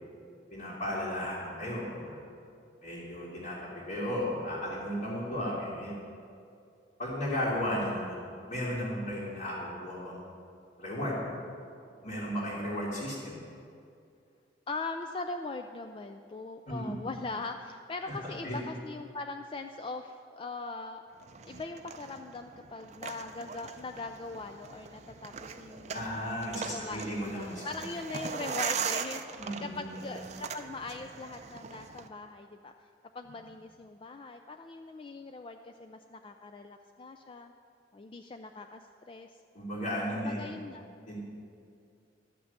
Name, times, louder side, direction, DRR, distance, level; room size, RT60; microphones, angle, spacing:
voice 1, 0.5-2.2 2.8-3.6 3.9-5.9 7.0-8.1 8.5-10.2 10.8-11.2 12.0-13.4 16.7-16.9 18.1-18.6 25.9-27.6 29.4-30.0 39.5-40.5 41.1-41.2, equal, 45° left, -8 dB, 2.5 m, -34 dB
voice 2, 14.7-21.0 21.4-26.2 26.7-32.7 33.1-37.5 37.9-39.3 40.1-40.8, left 3 dB, 30° left, 6 dB, 0.3 m, -41 dB
sound 1, 21.2-32.1, right 6 dB, 40° right, 0.5 m, -40 dB
12.5 x 6.1 x 8.0 m, 2.4 s
head